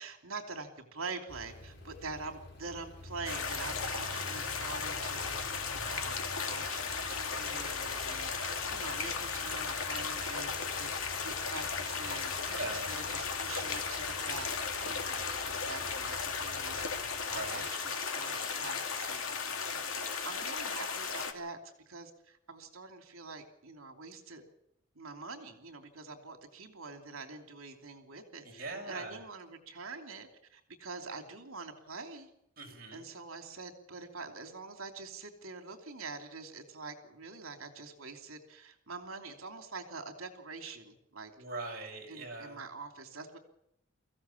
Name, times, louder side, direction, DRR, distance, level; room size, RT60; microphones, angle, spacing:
voice 1, 0.0-24.4 24.9-32.3 32.9-41.3 42.1-43.4, right 4 dB, 80° right, 5 dB, 3.0 m, -45 dB
sound 1, 1.3-18.5, left 1 dB, 55° left, 4.4 m, -49 dB
sound 2, 3.2-21.3, left 5 dB, 75° left, 2.4 m, -36 dB
voice 2, 12.4-12.9 17.3-17.6 28.4-29.2 32.6-33.0 41.4-42.6, right 2 dB, 45° right, 0 dB, 7.3 m, -41 dB
23.5 x 15.5 x 7.2 m, 0.76 s
head